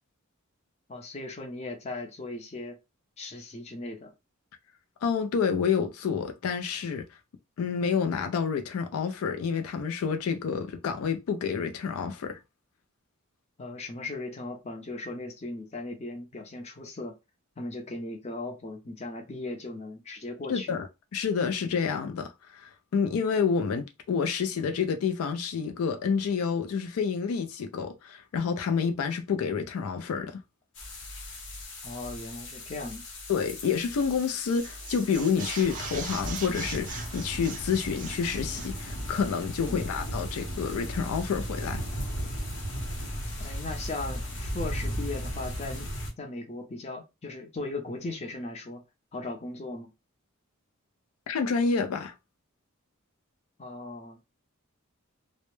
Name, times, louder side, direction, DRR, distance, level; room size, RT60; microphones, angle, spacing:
voice 1, 0.9-2.7 3.2-4.1 13.6-17.2 17.6-20.8 31.8-33.1 39.7-39.9 43.4-45.9 46.2-48.8 49.1-49.9 53.6-54.2, left 2 dB, 30° left, 0.5 m, -38 dB
voice 2, 5.0-7.0 7.6-12.4 20.5-20.9 21.1-30.4 33.3-41.8 51.3-52.1, left 6 dB, 80° left, 0.4 m, -29 dB
sound 1, 30.7-46.1, equal, 60° left, 0.9 m, -36 dB
sound 2, 34.0-34.3 34.5-38.8, right 5 dB, 40° right, 0.5 m, -41 dB
2.1 x 2.0 x 3.0 m
head